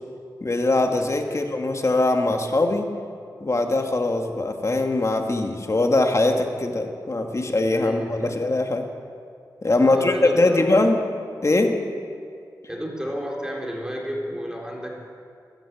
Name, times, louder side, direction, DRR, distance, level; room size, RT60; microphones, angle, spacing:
voice 1, 0.4-2.9 3.4-8.9 9.6-11.0 11.4-11.7, left 2 dB, 40° left, 4 dB, 2.0 m, -21 dB
voice 2, 7.8-8.4 9.8-10.9 12.7-15.0, equal, 10° right, -1 dB, 4.0 m, -32 dB
13.5 x 12.5 x 8.4 m, 2.3 s
cardioid pair, 45°, 7 cm